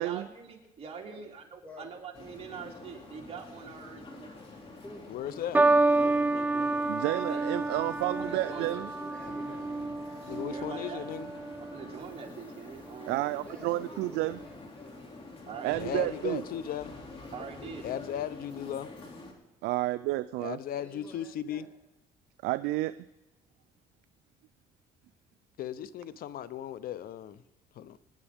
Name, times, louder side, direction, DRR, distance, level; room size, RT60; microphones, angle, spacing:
voice 1, 0.0-4.4 5.9-7.5 8.2-8.7 10.4-11.1 11.7-13.4 15.4-16.2 17.3-17.9, right 6 dB, 35° right, 0 dB, 2.7 m, -44 dB
sound 1, 2.1-19.3, left 2 dB, 35° left, 2.6 m, -47 dB
voice 2, 5.1-5.6 10.2-11.4 15.7-16.9 17.8-18.9 20.4-21.7 25.6-27.4 27.7-28.0, left 10 dB, 60° left, 16 dB, 0.6 m, -36 dB
sound 2, 5.5-12.1 12.9-13.3, right 2 dB, 10° right, 0.4 m, -29 dB
voice 3, 6.9-8.9 13.1-14.4 15.6-16.4 19.6-20.6 22.4-23.0, right 17 dB, 90° right, 12 dB, 0.4 m, -30 dB
voice 4, 8.2-9.9 13.0-14.9 20.7-21.7, left 1 dB, 5° left, 0 dB, 5.1 m, -50 dB
25.0 x 9.7 x 3.6 m, 0.99 s
cardioid pair, 110°, 17 cm